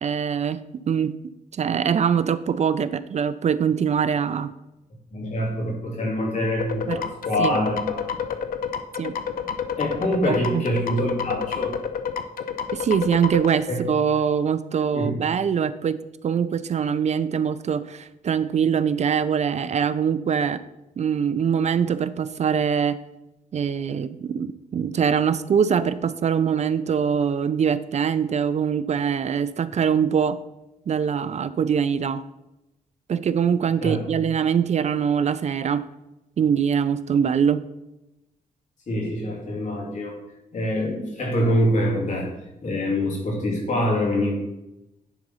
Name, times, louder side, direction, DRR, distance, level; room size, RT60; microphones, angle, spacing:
voice 1, 0.0-1.1 1.5-4.5 6.9-7.0 7.4-7.6 9.0-9.2 10.2-10.7 12.7-20.6 21.0-23.0 23.5-30.4 30.9-32.2 33.1-35.8 36.4-37.6, right 7 dB, 50° right, 14 dB, 0.4 m, -23 dB
voice 2, 5.1-8.1 9.8-11.8 13.7-13.8 14.9-15.2 33.8-34.0 38.9-40.2 40.5-42.3 42.6-44.3, equal, 55° left, -2 dB, 2.9 m, -25 dB
sound 1, 6.6-13.5, left 7 dB, 90° left, 0.6 m, -29 dB
10.0 x 3.9 x 5.5 m, 0.93 s
cardioid pair, 110°, 15 cm